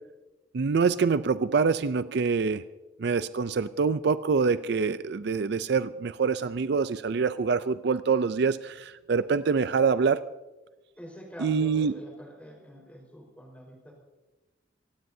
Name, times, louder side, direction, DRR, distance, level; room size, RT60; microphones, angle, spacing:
voice 1, 0.5-2.6 3.0-10.2 11.4-12.0, right 5 dB, 60° right, 13 dB, 0.4 m, -25 dB
voice 2, 10.9-13.9, equal, 5° left, 1 dB, 4.6 m, -45 dB
26.0 x 17.0 x 2.7 m, 1.1 s
head